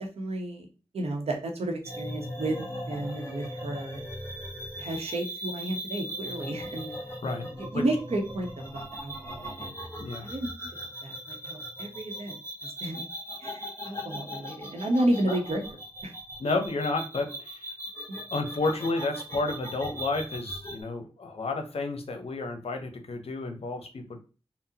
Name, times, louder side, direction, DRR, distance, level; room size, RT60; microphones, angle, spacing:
voice 1, 0.2-0.7 0.9-2.6 2.9-4.0 4.8-6.9 7.6-9.8 10.2-10.5 11.0-12.4 12.8-13.1 13.4-15.7 16.0-16.1 18.1-18.2, right 1 dB, 80° right, 2 dB, 0.8 m, -31 dB
sound 1, 1.8-20.8, equal, 25° left, 1.1 m, -39 dB
voice 2, 10.0-10.3 15.3-15.4 16.4-17.7 18.3-24.2, left 3 dB, 75° left, 5 dB, 0.6 m, -31 dB
3.7 x 2.0 x 2.7 m, 0.35 s
wide cardioid pair, 60°, 10 cm